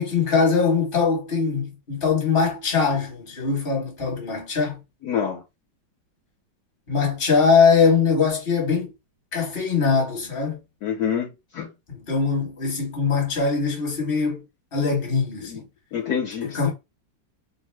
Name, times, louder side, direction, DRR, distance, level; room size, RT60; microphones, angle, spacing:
voice 1, 0.0-4.8 6.9-8.9 9.3-10.6 11.9-14.4 14.7-15.7 16.4-16.7, left 5 dB, 35° left, 1.2 m, -22 dB
voice 2, 5.0-5.4 10.8-11.7 15.4-15.6 15.9-16.7, left 8 dB, 65° left, 1.1 m, -27 dB
3.1 x 2.0 x 3.2 m
omnidirectional pair, 2.0 m